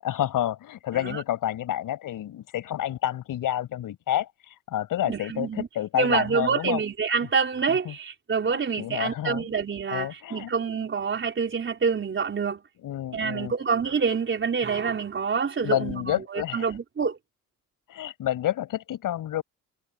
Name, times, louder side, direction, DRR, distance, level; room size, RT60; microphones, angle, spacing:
voice 1, 0.0-6.8 7.7-7.9 8.4-9.5 9.9-10.5 12.8-13.5 15.6-16.7 17.9-19.4, left 12 dB, 65° left, 6.4 m, -29 dB
voice 2, 5.0-5.7 5.9-12.6 13.1-17.2, right 5 dB, 35° right, 4.3 m, -27 dB
cardioid pair, 85°, 34 cm